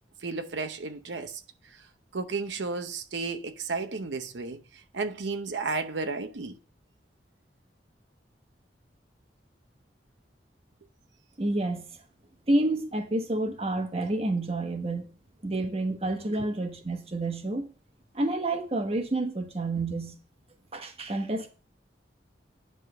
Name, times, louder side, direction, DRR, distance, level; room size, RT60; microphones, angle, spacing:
voice 1, 0.2-1.8 2.1-6.6 16.4-16.5, right 4 dB, 85° right, 0.8 m, -33 dB
voice 2, 11.4-11.9 12.5-15.1 15.4-17.6 18.1-20.2 20.7-21.5, right 2 dB, 35° right, 1.2 m, -29 dB
9.9 x 3.7 x 6.7 m
head